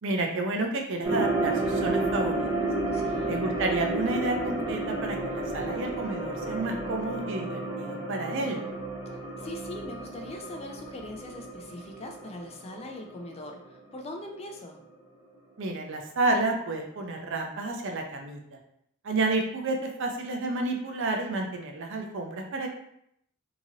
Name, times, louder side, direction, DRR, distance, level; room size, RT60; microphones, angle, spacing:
voice 1, 0.0-2.5 3.3-8.6 15.6-18.6 19.0-22.7, right 2 dB, 60° right, 3 dB, 0.5 m, -30 dB
sound 1, 1.0-13.3 13.6-13.7, right 2 dB, 20° right, 0.7 m, -31 dB
voice 2, 2.9-3.4 9.4-14.8, left 2 dB, 30° left, 2 dB, 0.4 m, -41 dB
2.9 x 2.6 x 2.8 m, 0.73 s
head